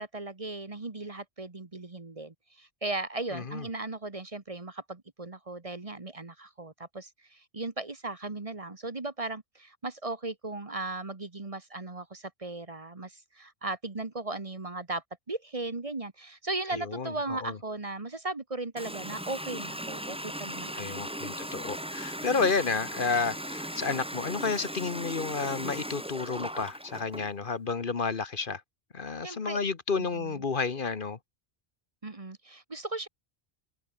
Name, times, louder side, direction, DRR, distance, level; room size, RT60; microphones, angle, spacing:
voice 1, 0.0-20.9 29.2-29.6 30.0-30.4 32.0-33.1, right 2 dB, 35° right, 1.4 m, -37 dB
voice 2, 3.3-3.7 16.7-17.6 20.7-28.6 28.9-31.2, left 4 dB, 55° left, 1.4 m, -31 dB
Water tap faucet, 18.8-27.3, equal, 5° right, 3.0 m, -38 dB
omnidirectional pair, 1.1 m